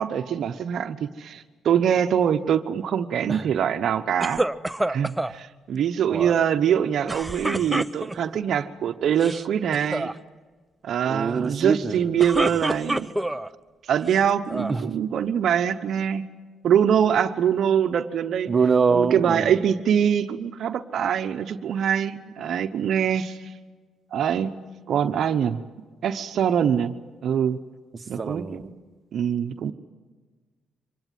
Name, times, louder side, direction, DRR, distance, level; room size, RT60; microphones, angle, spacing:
voice 1, 0.0-4.4 4.9-10.1 10.8-13.1 13.9-16.2 16.6-18.5 18.9-23.5 24.1-24.5 24.9-25.6 26.0-26.9 27.2-27.6 28.1-28.4 29.1-29.7, right 8 dB, 65° right, 9 dB, 0.9 m, -23 dB
sound 1, 4.2-5.4 7.1-8.4 9.1-9.4 9.7-10.1 12.0-13.5 14.1-14.8, right 1 dB, 10° right, 0.7 m, -27 dB
voice 2, 11.1-12.1 14.7-14.9 18.5-19.6 28.2-28.7, right 5 dB, 35° right, 6 dB, 1.3 m, -24 dB
25.0 x 19.5 x 9.2 m, 1.4 s
cardioid pair, 90°, 0 cm